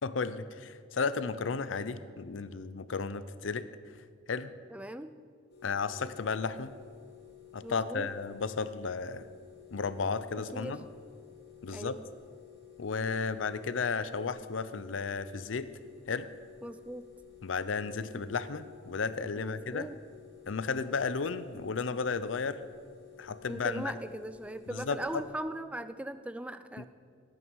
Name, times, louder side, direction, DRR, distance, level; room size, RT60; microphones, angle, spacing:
voice 1, 0.0-3.7 4.3-4.5 5.6-6.7 7.5-9.2 9.7-10.8 11.6-12.0 12.8-15.7 16.1-16.3 17.4-19.9 20.5-22.6 23.2-23.8 24.7-25.2 26.8-26.9, left 4 dB, 80° left, 14 dB, 0.6 m, -33 dB
voice 2, 4.7-5.1 7.6-8.1 10.5-10.8 11.7-12.0 16.6-17.1 18.1-18.2 19.4-20.0 23.5-26.8, right 1 dB, 5° right, 12 dB, 0.4 m, -39 dB
sound 1, 5.5-25.3, left 12 dB, 55° left, 3.0 m, -54 dB
18.0 x 9.2 x 4.7 m, 2.1 s
head